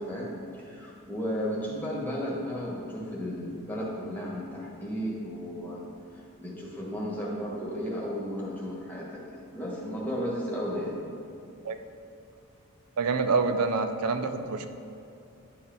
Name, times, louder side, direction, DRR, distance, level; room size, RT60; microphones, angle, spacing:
voice 1, 0.0-5.8 6.4-11.0, equal, 10° left, -5 dB, 1.4 m, -34 dB
voice 2, 13.0-14.7, right 4 dB, 90° right, 7 dB, 0.5 m, -26 dB
11.0 x 4.1 x 3.9 m, 2.7 s
head